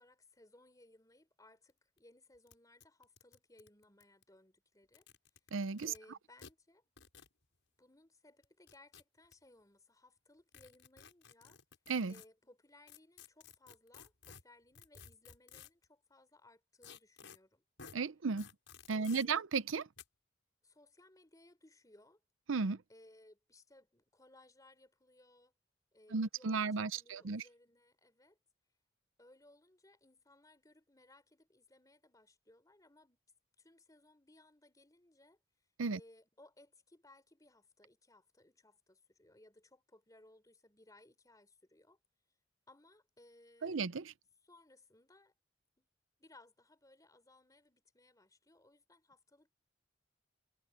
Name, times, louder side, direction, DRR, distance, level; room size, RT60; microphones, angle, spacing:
voice 1, 0.0-5.1 5.8-6.8 7.8-11.6 12.1-17.6 18.9-19.5 20.6-22.2 22.9-25.5 25.9-28.4 29.2-33.2 33.6-35.4 35.9-42.0 42.7-43.8 44.4-45.3 45.8-45.9 46.2-49.5, left 2 dB, 20° left, 4.3 m, -63 dB
sound 1, 1.7-1.8 2.0-2.1 2.5-2.6 2.8-4.2 4.8-6.0 6.4-6.5 7.0-7.3 8.4-9.3 10.5-12.3 12.9-15.8 16.8-17.4 17.8-18.0 18.4-19.2 20.0-20.1, left 7 dB, 75° left, 7.1 m, -55 dB
voice 2, 5.5-5.9 11.9-12.1 17.9-18.5 18.9-19.9 22.5-22.8 26.1-27.4 35.8-36.0 43.6-44.1, right 4 dB, 90° right, 0.7 m, -34 dB
head